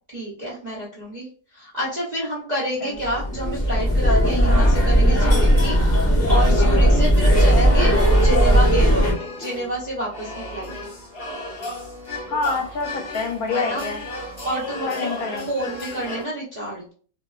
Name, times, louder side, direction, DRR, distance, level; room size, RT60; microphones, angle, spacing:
voice 1, 0.1-1.3 1.5-10.7 13.5-13.8 14.4-15.1 15.5-16.9, equal, 50° right, -7 dB, 0.5 m, -29 dB
sound 1, 3.0-9.1, equal, 20° left, 0.5 m, -17 dB
sound 2, 8.1-16.2, left 2 dB, 50° left, 0.8 m, -34 dB
voice 2, 12.3-14.0 14.9-15.5, left 4 dB, 75° left, 3 dB, 1.1 m, -26 dB
2.7 x 2.2 x 2.3 m, 0.43 s
omnidirectional pair, 1.6 m